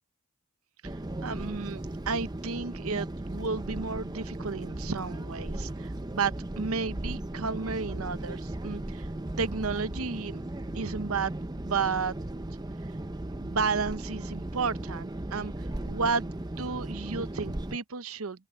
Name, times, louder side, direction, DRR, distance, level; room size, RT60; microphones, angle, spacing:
sound 1, 0.8-17.8, right 1 dB, 20° right, 0.7 m, -36 dB
voice 1, 1.2-9.1 9.4-10.4 10.7-11.3 11.6-12.1 12.8-12.9 13.4-18.5, right 5 dB, 80° right, 0.8 m, -32 dB
open air
head